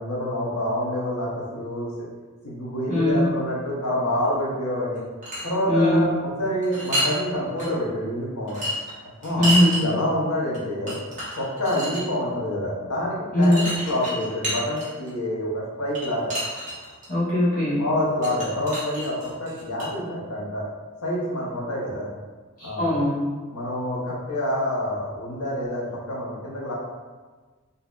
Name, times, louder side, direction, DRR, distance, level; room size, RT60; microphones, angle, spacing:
voice 1, 0.0-1.9 2.4-5.0 5.4-6.1 6.4-8.6 9.2-10.9 11.3-16.3 17.8-20.7 21.0-22.1 22.6-22.9 23.5-26.7, left 1 dB, 80° left, -4 dB, 1.0 m, -27 dB
voice 2, 2.9-3.3 5.7-6.0 9.4-9.8 13.3-13.7 17.1-17.9 22.6-23.3, left 1 dB, 40° left, -11 dB, 1.2 m, -20 dB
sound 1, 5.0-5.5 6.6-7.2 7.6-7.7 8.5-9.8 10.5-10.6 10.9-12.0 13.4-15.1 15.9-17.1 18.2-19.9, right 1 dB, 35° right, 1.0 m, -29 dB
4.0 x 2.7 x 2.4 m, 1.4 s
head